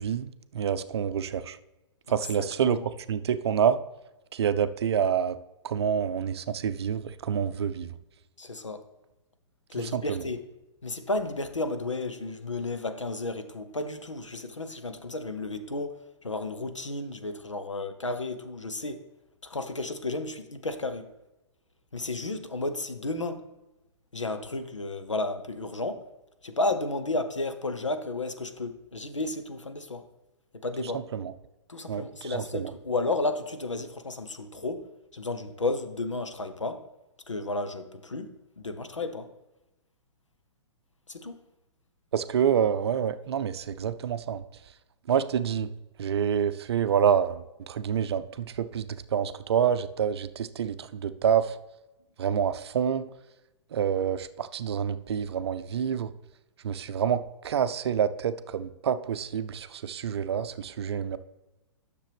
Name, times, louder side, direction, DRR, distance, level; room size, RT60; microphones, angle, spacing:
voice 1, 0.0-1.6 2.1-2.8 3.1-3.8 4.3-5.4 5.6-7.9 9.9-10.2 31.1-31.3 31.9-32.0 32.3-32.7 42.1-44.4 45.1-45.7 46.0-48.8 49.1-51.5 52.2-53.1 53.7-56.1 56.6-61.2, right 8 dB, 60° right, 0.5 m, -27 dB
voice 2, 2.4-2.9 8.4-8.8 9.7-10.4 10.8-19.1 19.4-21.1 21.9-23.4 24.1-26.1 26.4-30.0 30.5-31.0 31.7-36.8 37.3-39.3 41.1-41.4, left 2 dB, 90° left, 0.9 m, -33 dB
9.8 x 6.7 x 3.4 m
figure-of-eight pair, 120°, 15 cm